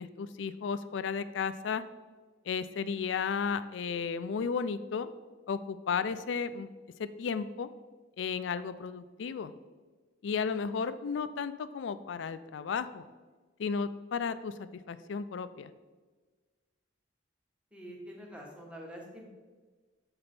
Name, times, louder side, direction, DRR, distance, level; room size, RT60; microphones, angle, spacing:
voice 1, 0.0-1.8 2.4-5.1 5.5-6.7 7.0-7.7 8.2-9.5 10.2-13.1 13.6-15.7, left 6 dB, 70° left, 13 dB, 0.4 m, -34 dB
voice 2, 17.7-19.3, equal, 5° right, -1 dB, 1.0 m, -46 dB
6.8 x 4.3 x 4.2 m, 1.4 s
head